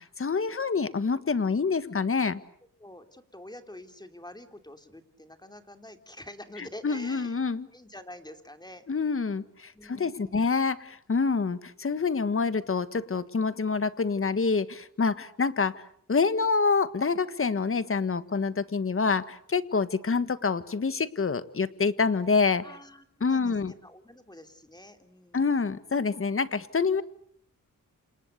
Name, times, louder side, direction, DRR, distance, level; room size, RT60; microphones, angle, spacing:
voice 1, 0.0-2.4 6.8-7.7 8.9-15.8 16.1-22.6 23.2-23.7 25.3-27.0, left 4 dB, 40° left, 13 dB, 1.6 m, -27 dB
voice 2, 2.8-7.4 7.7-8.8 9.7-10.4 22.6-25.5, left 1 dB, 10° left, 7 dB, 3.1 m, -47 dB
29.0 x 27.5 x 6.7 m, 0.65 s
cardioid pair, 85°, 33 cm